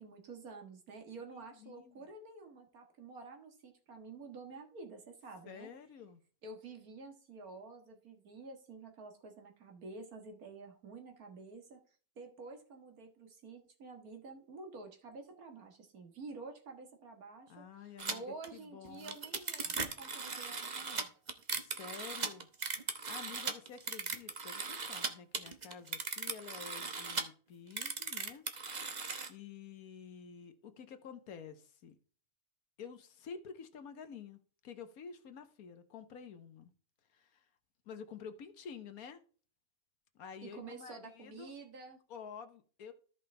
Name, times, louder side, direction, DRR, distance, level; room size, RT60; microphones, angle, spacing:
voice 1, 0.0-5.7 6.4-11.8 12.2-21.1 40.4-42.0, right 3 dB, 75° right, 2.1 m, -50 dB
voice 2, 1.3-2.1 5.5-6.2 17.5-18.2 18.5-19.2 21.5-22.5 22.7-29.0 29.3-32.0 32.8-36.7 37.1-37.5 37.8-39.2 40.1-41.5 42.1-42.9, left 6 dB, 70° left, 1.5 m, -50 dB
sound 1, 18.0-18.1 18.4-18.5 18.8-25.1 25.3-27.2 27.7-29.3, right 4 dB, 35° right, 0.9 m, -38 dB
14.0 x 5.3 x 3.4 m
omnidirectional pair, 1.6 m